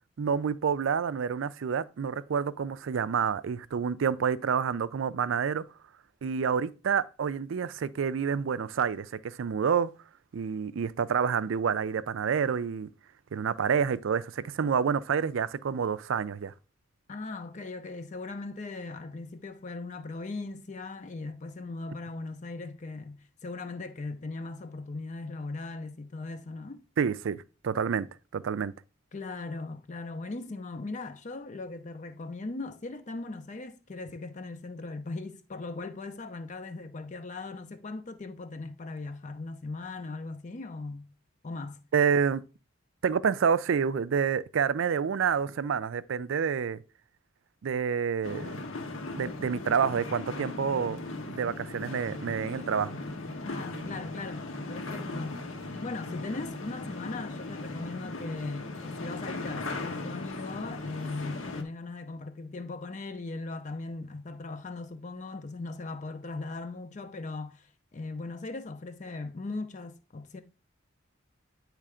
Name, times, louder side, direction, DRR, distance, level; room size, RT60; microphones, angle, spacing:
voice 1, 0.2-5.6 6.2-9.9 10.3-12.9 13.3-16.5 27.0-28.1 28.3-28.7 41.9-42.4 43.0-46.8 47.6-48.6 49.1-53.0, right 6 dB, 70° right, 0.4 m, -28 dB
voice 2, 17.1-26.8 29.1-41.1 41.4-41.8 53.4-55.4 55.8-70.4, left 3 dB, 35° left, 0.5 m, -39 dB
sound 1, 48.2-61.6, left 2 dB, 75° left, 1.2 m, -38 dB
8.6 x 3.2 x 4.9 m
head